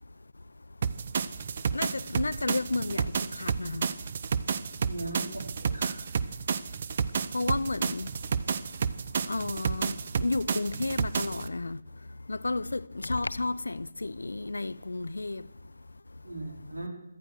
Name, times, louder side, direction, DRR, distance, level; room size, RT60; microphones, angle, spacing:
sound 1, 0.8-11.5, right 6 dB, 45° right, 0.8 m, -31 dB
voice 1, 1.7-3.9 7.3-8.1 8.7-8.8 9.3-11.8 12.3-15.5, left 2 dB, 75° left, 0.7 m, -32 dB
voice 2, 4.8-6.0 16.2-16.9, right 2 dB, 80° right, 4.8 m, -38 dB
17.5 x 12.5 x 6.4 m
figure-of-eight pair, 150°, 0 cm